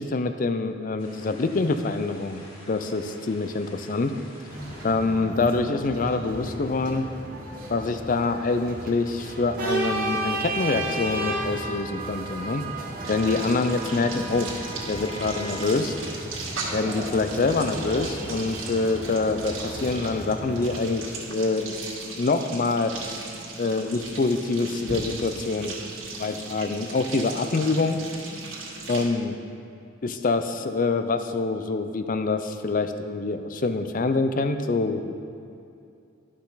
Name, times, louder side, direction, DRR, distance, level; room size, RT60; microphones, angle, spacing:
voice 1, 0.0-2.4 2.7-4.1 4.8-7.0 7.7-12.6 13.1-14.5 14.9-15.9 16.7-21.7 22.2-23.2 23.6-25.7 26.2-28.0 28.9-29.4 30.0-35.2, left 3 dB, 45° left, 9 dB, 0.5 m, -25 dB
sound 1, 1.0-5.2, left 1 dB, 90° left, 1.8 m, -49 dB
sound 2, 4.5-20.7, right 1 dB, 45° right, 1.6 m, -34 dB
sound 3, 13.0-29.0, right 3 dB, 85° right, 2.0 m, -37 dB
11.5 x 6.3 x 4.0 m, 2.6 s
head